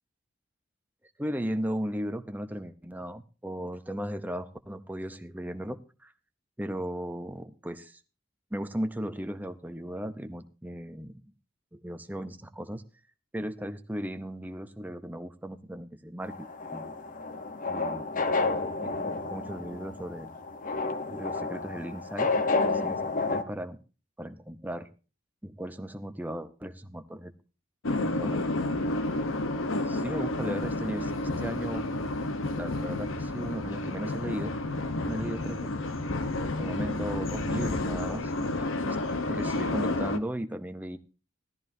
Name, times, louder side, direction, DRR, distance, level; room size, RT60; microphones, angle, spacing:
voice 1, 1.2-6.1 6.6-8.0 8.5-11.3 11.7-12.8 13.3-16.4 16.7-16.9 17.7-18.2 18.8-20.3 21.1-22.3 22.7-23.0 23.3-23.8 24.2-24.9 25.4-27.3 28.0-28.6 29.7-31.9 32.6-34.5 35.1-35.7 36.4-39.0 39.3-41.0, equal, 10° right, 9 dB, 0.7 m, -36 dB
sound 1, 16.2-23.4, left 3 dB, 40° left, 1.0 m, -30 dB
sound 2, 27.8-40.2, left 2 dB, 75° left, 1.0 m, -30 dB
15.5 x 13.5 x 2.7 m, 0.33 s
head